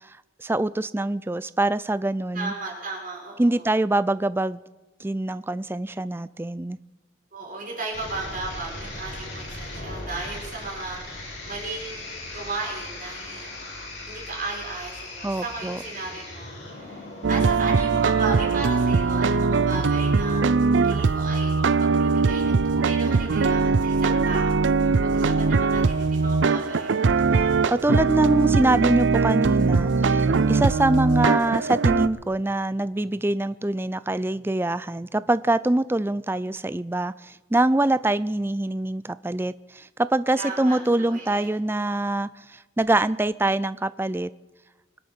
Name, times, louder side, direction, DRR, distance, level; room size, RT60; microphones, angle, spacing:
voice 1, 0.1-2.5 3.4-4.6 5.0-6.8 15.2-15.8 27.7-44.3, right 2 dB, 10° right, 16 dB, 0.4 m, -24 dB
voice 2, 2.3-3.6 7.3-13.5 14.1-20.4 20.7-27.0 40.4-41.5, right 3 dB, 45° right, -2 dB, 5.1 m, -35 dB
sound 1, 7.9-17.4, left 2 dB, 65° left, 7.3 m, -38 dB
sound 2, 17.2-32.1, right 4 dB, 70° right, 0.5 m, -21 dB
25.0 x 8.5 x 6.2 m, 1.2 s
head